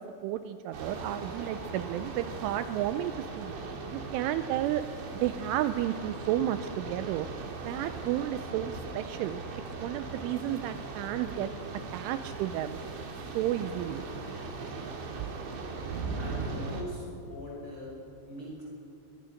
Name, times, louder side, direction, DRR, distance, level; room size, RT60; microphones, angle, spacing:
voice 1, 0.0-3.5 3.9-4.8 5.1-7.3 7.7-9.4 9.8-11.5 11.9-12.8 13.3-14.0, right 12 dB, 80° right, 10 dB, 3.0 m, -32 dB
sound 1, 0.7-16.8, right 3 dB, 65° right, 4.7 m, -39 dB
voice 2, 16.1-17.9 18.2-18.6, equal, 25° left, -5 dB, 6.2 m, -41 dB
23.5 x 22.5 x 6.5 m, 2.6 s
omnidirectional pair, 5.8 m